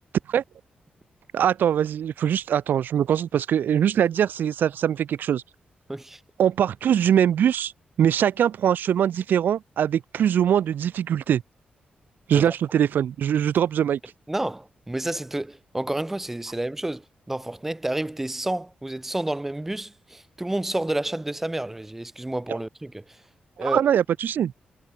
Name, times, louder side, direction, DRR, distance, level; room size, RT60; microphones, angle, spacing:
voice 1, 1.3-5.4 6.4-7.7 8.0-11.4 12.3-14.0 22.5-22.6 23.6-24.5, right 9 dB, 75° right, 2.4 m, -22 dB
voice 2, 5.9-6.2 12.3-12.5 14.3-23.2 23.6-23.8, right 1 dB, 10° right, 2.1 m, -30 dB
wide cardioid pair, 165°, 3 cm